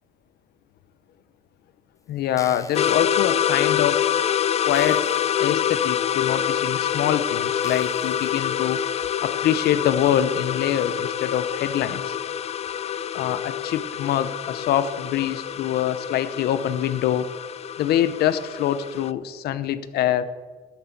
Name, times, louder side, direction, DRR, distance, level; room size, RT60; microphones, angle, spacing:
voice 1, 2.1-4.1 4.7-5.1 5.4-8.8 9.2-12.1 13.1-17.3 17.8-20.3, left 10 dB, 70° left, 14 dB, 0.8 m, -24 dB
sound 1, 2.2-2.9 3.6-3.7 4.2-4.3 4.7-5.4 5.9-6.0 6.7-6.8 7.6-8.3 8.8-8.9, left 3 dB, 20° left, 0.9 m, -43 dB
sound 2, 2.7-19.1, left 9 dB, 40° left, 0.4 m, -26 dB
11.5 x 7.1 x 7.9 m, 1.4 s
cardioid pair, 110°, 17 cm